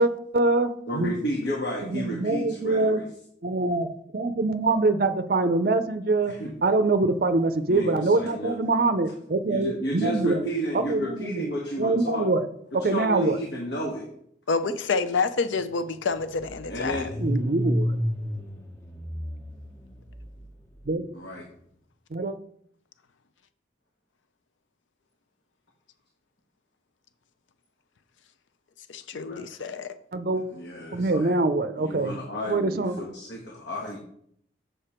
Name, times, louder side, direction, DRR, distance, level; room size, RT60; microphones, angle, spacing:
voice 1, 0.0-1.1 1.8-3.0 3.4-3.9 4.1-6.3 6.6-10.4 10.9-11.4 11.8-12.5 12.8-13.4 17.2-17.9 20.9-21.1 22.1-22.3 30.1-30.4 30.9-32.1 32.5-32.9, right 2 dB, 50° right, 9 dB, 0.5 m, -24 dB
voice 2, 0.9-3.0 6.3-6.5 7.7-8.6 9.5-12.3 12.7-14.1 16.7-17.1 21.1-21.4 29.1-29.4 30.5-31.4 31.8-34.0, equal, 70° left, -2 dB, 1.4 m, -32 dB
voice 3, 14.5-17.1 28.9-29.9, left 4 dB, 85° left, 12 dB, 0.5 m, -28 dB
Car / Engine starting, 15.2-15.3 15.6-20.8, equal, 15° left, 0.8 m, -31 dB
6.8 x 6.7 x 4.4 m, 0.68 s
head